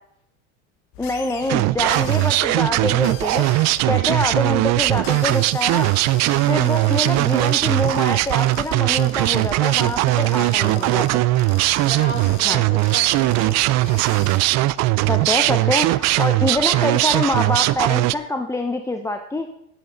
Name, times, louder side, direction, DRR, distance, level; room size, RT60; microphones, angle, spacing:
sound 1, 0.9-14.4, left 10 dB, 65° left, 1.6 m, -41 dB
voice 1, 1.0-5.9 6.5-11.0 12.4-12.6 15.0-19.5, left 1 dB, 10° left, 6 dB, 0.7 m, -25 dB
sound 2, 1.5-18.2, right 18 dB, 50° right, 0.5 m, -19 dB
voice 2, 3.8-4.2 6.3-6.7 10.1-11.1 11.8-13.6, left 1 dB, 30° left, 0 dB, 5.4 m, -35 dB
18.5 x 7.9 x 3.9 m, 0.78 s
supercardioid pair, 110°, 36 cm